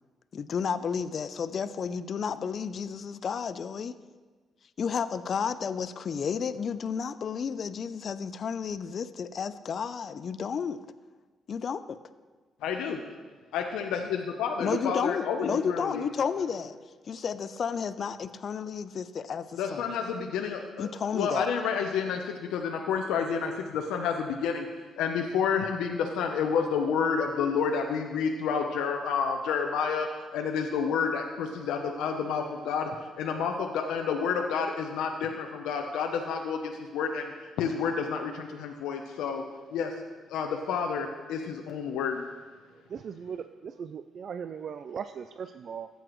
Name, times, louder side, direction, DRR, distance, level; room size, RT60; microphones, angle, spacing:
voice 1, 0.3-3.9 4.8-10.8 11.5-12.0 14.6-16.8 17.1-19.8 20.8-21.5, left 6 dB, 50° left, 13 dB, 0.4 m, -32 dB
voice 2, 12.6-13.0 13.5-16.0 19.6-32.9 33.2-39.4 39.7-39.9 40.3-42.2, left 6 dB, 90° left, 3 dB, 0.7 m, -30 dB
voice 3, 42.9-45.9, right 7 dB, 55° right, 10 dB, 0.3 m, -38 dB
13.5 x 7.9 x 3.1 m, 1.4 s
cardioid pair, 90°, 0 cm